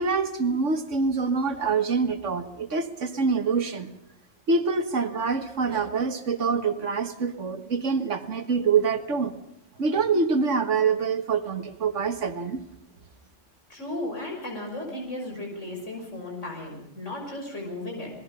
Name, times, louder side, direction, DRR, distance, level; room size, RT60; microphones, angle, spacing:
voice 1, 0.0-3.9 4.5-9.3 9.8-12.6, right 5 dB, 75° right, 9 dB, 1.9 m, -25 dB
voice 2, 13.7-18.1, left 1 dB, 75° left, 0 dB, 6.6 m, -35 dB
27.5 x 20.0 x 5.5 m, 0.76 s
omnidirectional pair, 1.3 m